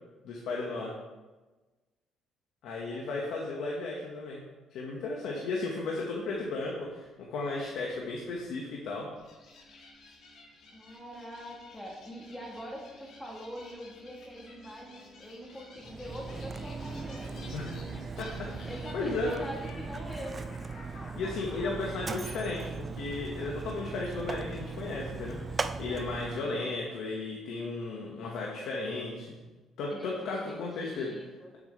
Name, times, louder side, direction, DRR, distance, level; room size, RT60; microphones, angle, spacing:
voice 1, 0.2-0.9 2.6-4.4 4.7-9.1 17.5-17.9 18.2-19.5 20.8-29.4 29.8-31.1, left 3 dB, 80° left, -2 dB, 1.5 m, -35 dB
sound 1, 6.2-25.4, equal, 40° right, 2.6 m, -54 dB
sound 2, 9.2-23.8, left 2 dB, 60° left, 2.2 m, -53 dB
voice 2, 10.7-17.8 18.6-20.5 26.4-26.7 29.9-31.5, equal, 5° left, -2 dB, 1.4 m, -44 dB
Mechanisms, 15.8-26.5, right 4 dB, 25° right, 0.4 m, -39 dB
10.0 x 8.1 x 3.3 m, 1.2 s
cardioid pair, 145°, 0 cm